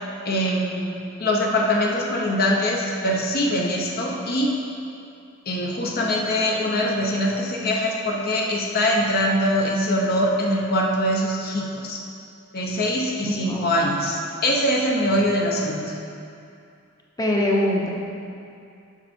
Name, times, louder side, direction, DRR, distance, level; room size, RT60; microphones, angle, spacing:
voice 1, 0.3-4.5 5.5-12.0 12.5-15.8, equal, 50° left, -1 dB, 0.8 m, -23 dB
voice 2, 17.2-17.9, left 1 dB, 20° left, -2 dB, 0.8 m, -22 dB
7.2 x 5.6 x 4.4 m, 2.5 s
head